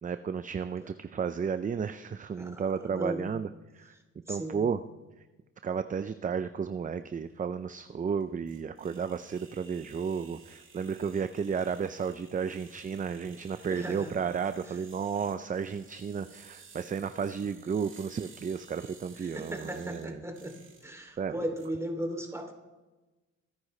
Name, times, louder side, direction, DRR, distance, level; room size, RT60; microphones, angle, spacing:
voice 1, 0.0-3.9 4.3-4.8 5.6-20.2 21.2-21.4, right 6 dB, 25° right, 11 dB, 0.5 m, -33 dB
voice 2, 2.3-3.4 4.3-4.7 13.7-14.1 14.7-14.8 19.2-20.6 20.8-22.5, equal, 10° right, 4 dB, 2.8 m, -37 dB
sound 1, 7.0-21.7, right 5 dB, 40° right, 2.2 m, -56 dB
25.5 x 9.8 x 3.2 m, 1.2 s
cardioid pair, 90°, 30 cm